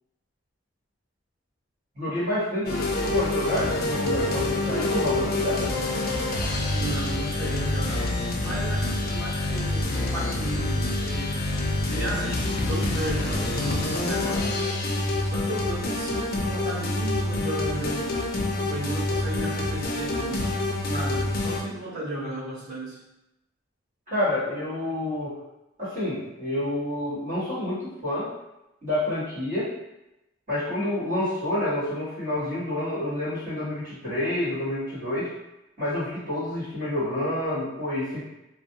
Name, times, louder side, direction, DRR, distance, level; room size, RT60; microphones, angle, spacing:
voice 1, 1.9-5.7 24.1-25.4 25.8-28.3 28.8-29.7 30.5-35.3 35.8-38.2, left 1 dB, 45° right, -11 dB, 1.4 m, -28 dB
sound 1, 2.6-21.6, left 2 dB, 50° left, 0.4 m, -27 dB
voice 2, 6.7-8.2 8.4-11.5 11.9-14.5 15.2-18.1 18.6-20.4 20.9-23.0, right 1 dB, 15° right, -17 dB, 1.1 m, -34 dB
2.5 x 2.0 x 2.7 m, 0.93 s
head